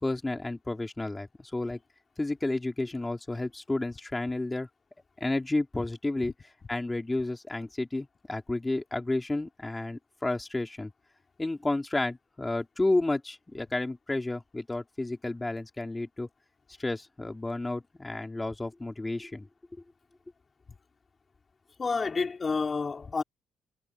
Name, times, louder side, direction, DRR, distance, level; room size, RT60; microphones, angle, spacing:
voice 1, 0.0-1.8 2.2-4.7 5.2-6.3 6.7-10.9 11.4-16.3 16.8-19.5, left 2 dB, 15° left, 3.7 m, -31 dB
voice 2, 21.8-23.2, left 4 dB, 35° left, 3.5 m, -29 dB
cardioid pair, 90°, 0 cm